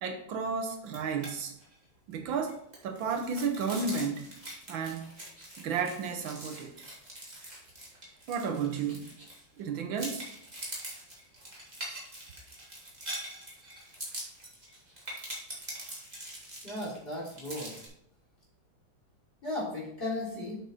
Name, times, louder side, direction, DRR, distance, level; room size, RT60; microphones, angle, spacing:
voice 1, 0.0-1.5 2.1-2.6 2.8-4.3 4.7-5.1 5.6-6.9 8.3-9.1 9.6-10.3, right 5 dB, 75° right, 5 dB, 1.6 m, -32 dB
sound 1, 0.8-1.3 1.6-1.7 2.1-9.6 10.0-17.9, right 1 dB, 20° right, 2.5 m, -43 dB
voice 2, 16.6-17.7 19.4-20.6, left 1 dB, 25° left, -6 dB, 3.5 m, -35 dB
8.0 x 6.3 x 4.1 m, 0.71 s
omnidirectional pair, 2.2 m